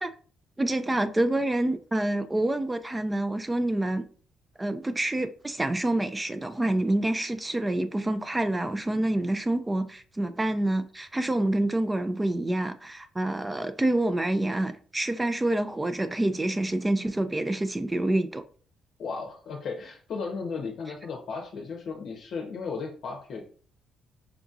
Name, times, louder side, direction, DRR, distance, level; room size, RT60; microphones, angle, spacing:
voice 1, 0.6-4.0 4.6-18.4, right 1 dB, 15° right, 0.3 m, -27 dB
voice 2, 19.0-23.5, left 4 dB, 65° left, 0.6 m, -35 dB
4.7 x 2.6 x 2.4 m
cardioid pair, 90°, 0 cm